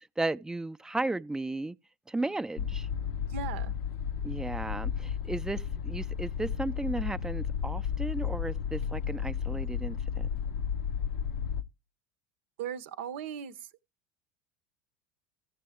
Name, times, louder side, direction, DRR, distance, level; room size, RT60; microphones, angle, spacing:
voice 1, 0.2-1.8 2.1-2.9 4.2-10.3, right 2 dB, 10° right, 0.4 m, -34 dB
sound 1, 2.6-11.6, left 7 dB, 70° left, 0.6 m, -33 dB
voice 2, 3.3-3.7 12.6-13.7, right 8 dB, 70° right, 0.7 m, -38 dB
15.0 x 6.7 x 3.5 m
hypercardioid pair, 80°, 7 cm